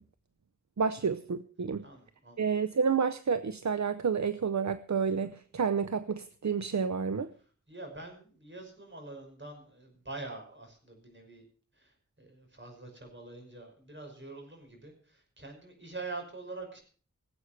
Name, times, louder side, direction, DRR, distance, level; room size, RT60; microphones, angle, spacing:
voice 1, 0.8-1.8 2.4-7.3, right 6 dB, 65° right, 12 dB, 0.7 m, -30 dB
voice 2, 1.8-2.4 7.7-11.4 11.8-11.9 12.2-16.8, right 3 dB, 40° right, 3 dB, 5.8 m, -45 dB
19.0 x 8.2 x 5.9 m, 0.42 s
wide cardioid pair, 65°, 30 cm